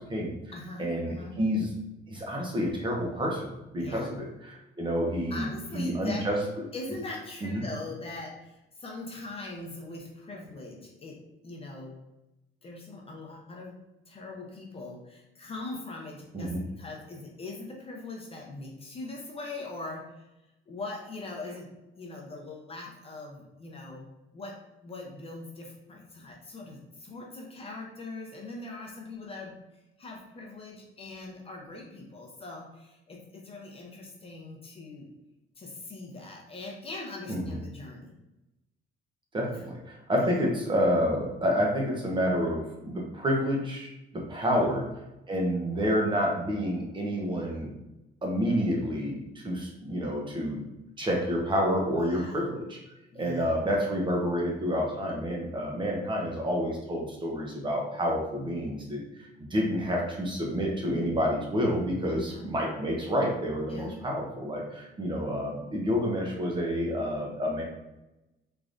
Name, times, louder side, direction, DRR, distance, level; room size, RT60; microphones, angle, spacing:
voice 1, 0.0-0.3 0.8-1.7 2.1-4.3 4.8-6.4 7.4-7.6 16.3-16.6 37.3-37.4 39.3-44.8 45.3-47.7 48.2-50.6 51.0-52.8 53.2-59.0 59.5-67.6, equal, 25° right, -1 dB, 0.7 m, -29 dB
voice 2, 0.5-1.4 3.8-4.1 5.3-6.3 6.7-11.2 11.4-12.0 12.6-13.8 14.1-20.2 20.7-21.7 21.9-24.1 24.3-24.5 24.8-29.6 30.0-35.1 35.6-38.1 39.4-39.6 40.2-40.4 44.5-44.8 51.9-52.5 53.1-53.5 62.1-62.5 63.7-64.0, left 2 dB, 30° left, -1 dB, 0.6 m, -41 dB
3.6 x 3.2 x 2.5 m, 0.96 s
cardioid pair, 140°, 21 cm